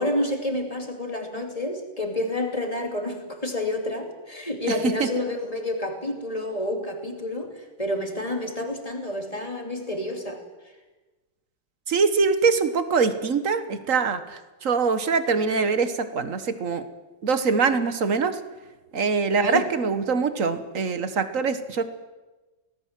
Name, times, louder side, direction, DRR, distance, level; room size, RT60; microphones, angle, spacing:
voice 1, 0.0-10.4 19.4-19.6, left 1 dB, 20° left, 3 dB, 2.9 m, -29 dB
voice 2, 4.7-5.1 11.9-16.9 17.2-18.4 18.9-21.8, right 5 dB, 45° right, 11 dB, 1.5 m, -23 dB
25.0 x 18.5 x 7.5 m, 1.2 s
omnidirectional pair, 2.1 m